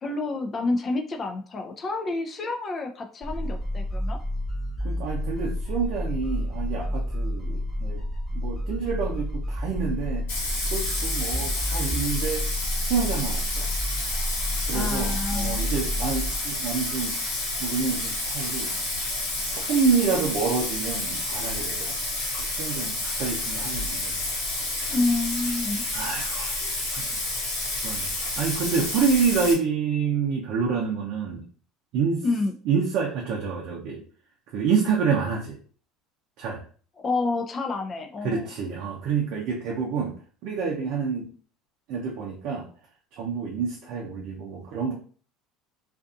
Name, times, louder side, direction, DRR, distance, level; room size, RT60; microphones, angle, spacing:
voice 1, 0.0-4.2 14.7-15.6 24.9-25.8 32.2-32.5 37.0-38.5, left 3 dB, 35° left, 4 dB, 0.4 m, -28 dB
sound 1, 3.2-16.3, left 1 dB, 10° left, 1.2 m, -30 dB
voice 2, 4.8-8.1 8.3-10.2 10.7-12.4 12.8-13.7 14.7-17.2 17.6-18.7 19.5-22.0 22.4-24.2 25.9-26.6 26.9-27.1 27.8-28.1 28.4-31.4 31.9-32.2 32.7-34.0 34.5-35.6 36.4-36.6 38.2-40.1 40.4-41.3 41.9-42.7 43.1-44.9, right 5 dB, 65° right, -1 dB, 0.6 m, -27 dB
Bathtub (filling or washing), 10.3-29.5, left 2 dB, 85° left, 1.2 m, -30 dB
2.5 x 2.5 x 2.4 m, 0.42 s
supercardioid pair, 90°, 0 cm